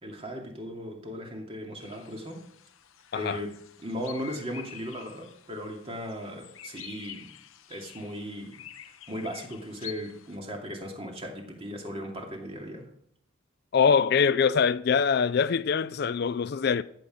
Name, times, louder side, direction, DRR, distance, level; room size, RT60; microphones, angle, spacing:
voice 1, 0.0-2.4 3.1-3.5 3.8-7.3 7.7-12.9, equal, 30° right, 2.4 m, -37 dB
sound 1, 1.8-10.4, left 11 dB, 85° left, 0.8 m, -48 dB
voice 2, 13.7-16.8, left 6 dB, 50° left, 0.4 m, -23 dB
14.0 x 7.9 x 5.0 m
head